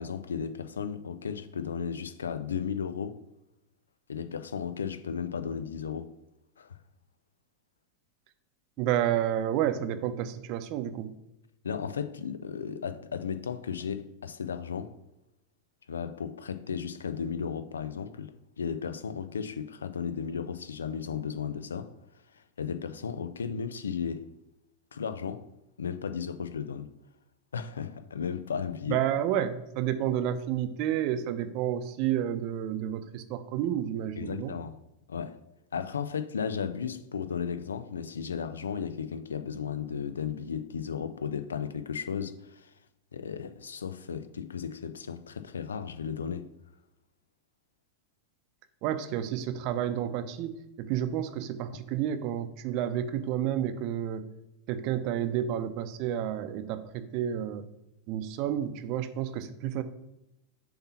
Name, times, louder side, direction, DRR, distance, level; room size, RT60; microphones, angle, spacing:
voice 1, 0.0-3.2 4.1-6.1 6.6-6.8 11.6-14.9 15.9-21.9 22.3-24.3 24.9-25.5 25.8-26.9 27.5-29.0 34.2-34.7 35.1-35.4 35.7-42.7 43.1-46.5, left 7 dB, 80° left, 0.5 m, -35 dB
voice 2, 8.8-11.1 28.9-34.5 48.8-54.3 54.7-57.6 58.1-59.8, right 10 dB, 50° right, 0.6 m, -30 dB
6.7 x 2.9 x 5.7 m
figure-of-eight pair, 90°, 0 cm